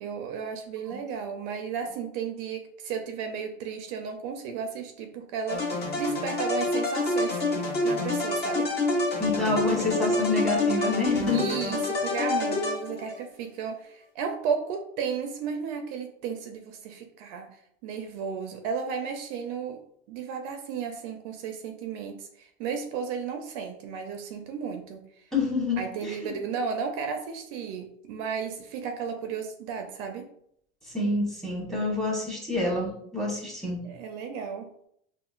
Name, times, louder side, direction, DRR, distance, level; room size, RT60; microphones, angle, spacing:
voice 1, 0.0-7.4 7.8-8.7 11.3-17.5 17.8-19.8 20.1-25.0 25.8-30.3 33.8-34.7, right 6 dB, 65° right, 5 dB, 0.5 m, -34 dB
sound 1, 5.5-13.2, left 2 dB, 30° left, 1.1 m, -27 dB
voice 2, 9.2-11.5 25.3-26.3 30.9-33.8, left 3 dB, ahead, -3 dB, 1.2 m, -27 dB
3.6 x 2.0 x 2.4 m, 0.69 s
supercardioid pair, 100°, 33 cm